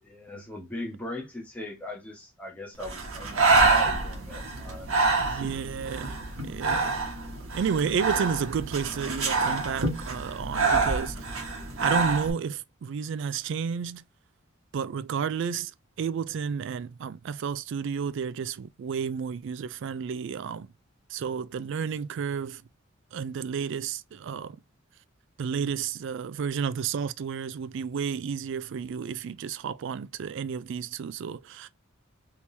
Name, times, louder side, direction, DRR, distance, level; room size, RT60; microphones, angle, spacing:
voice 1, 0.0-5.6, left 1 dB, 5° left, 1.1 m, -40 dB
Breathing, 2.8-12.3, right 3 dB, 85° right, 1.2 m, -26 dB
voice 2, 5.2-7.0 7.5-11.4 11.8-14.0 14.7-15.7 16.0-20.7 21.1-22.6 23.1-24.6 25.4-31.7, right 6 dB, 60° right, 0.3 m, -31 dB
3.7 x 2.9 x 2.7 m
head